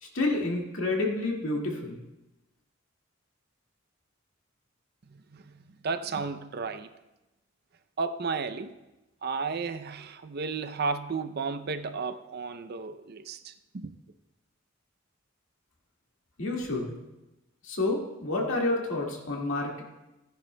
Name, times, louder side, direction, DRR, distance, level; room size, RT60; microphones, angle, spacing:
voice 1, 0.0-2.0 16.4-17.0 17.6-19.8, left 2 dB, 90° left, 1.9 m, -29 dB
voice 2, 5.1-6.9 8.0-8.7 9.2-14.0, right 4 dB, 50° right, 0.5 m, -33 dB
16.0 x 10.0 x 2.2 m
head